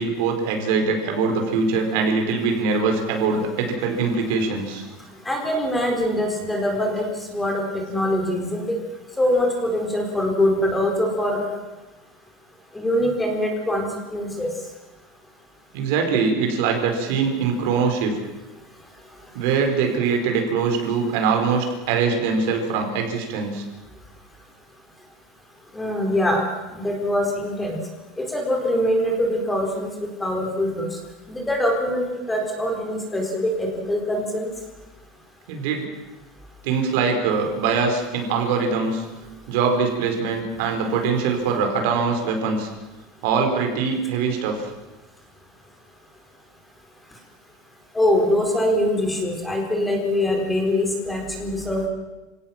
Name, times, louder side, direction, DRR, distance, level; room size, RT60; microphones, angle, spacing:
voice 1, 0.0-4.8 15.7-18.2 19.3-23.6 35.5-35.9 36.6-39.0 39.5-42.7 43.2-44.7, right 5 dB, 65° right, 4 dB, 4.9 m, -22 dB
voice 2, 5.3-7.6 7.9-8.7 9.2-11.5 12.7-14.5 25.7-26.4 26.7-27.8 28.2-30.9 31.3-34.5 47.9-51.9, left 1 dB, 5° left, 2 dB, 4.3 m, -23 dB
26.5 x 17.5 x 7.5 m, 1.1 s
supercardioid pair, 155°, 0 cm